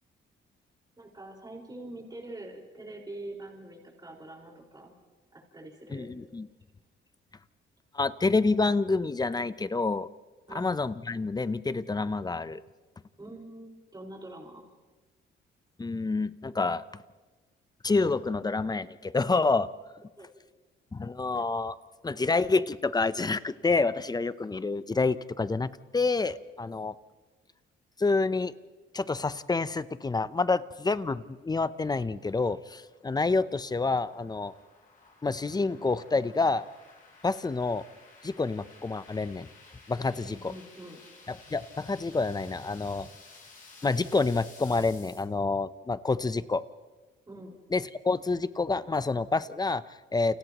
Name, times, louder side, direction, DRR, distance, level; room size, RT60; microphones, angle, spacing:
voice 1, 1.0-4.9 5.3-6.1 10.5-10.8 13.2-14.6 20.1-20.3 40.3-41.0 47.3-47.5, right 1 dB, 20° right, -1 dB, 5.1 m, -44 dB
voice 2, 5.9-6.5 7.9-10.1 10.5-12.6 15.8-16.8 17.8-19.7 20.9-21.8 22.0-26.9 28.0-28.5 28.9-34.5 35.2-36.7 37.2-37.8 38.2-39.5 39.9-40.5 41.3-43.1 43.8-46.6 47.7-50.4, left 3 dB, 20° left, 15 dB, 0.7 m, -28 dB
sound 1, 31.3-45.2, left 3 dB, 45° left, 7.0 m, -54 dB
30.0 x 29.0 x 3.0 m, 1.3 s
cardioid pair, 90°, 20 cm